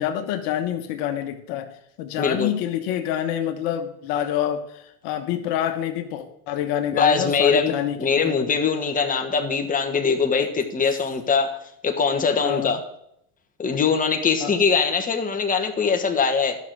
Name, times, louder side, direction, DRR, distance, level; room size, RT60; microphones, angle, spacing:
voice 1, 0.0-1.7 2.0-8.5 12.4-12.8 14.4-14.6, left 10 dB, 65° left, 7 dB, 1.4 m, -27 dB
voice 2, 2.2-2.5 6.9-7.7 8.0-11.6 11.8-12.8 13.6-16.6, left 5 dB, 20° left, 4 dB, 1.4 m, -22 dB
11.5 x 6.4 x 6.1 m, 0.75 s
supercardioid pair, 100°, 44 cm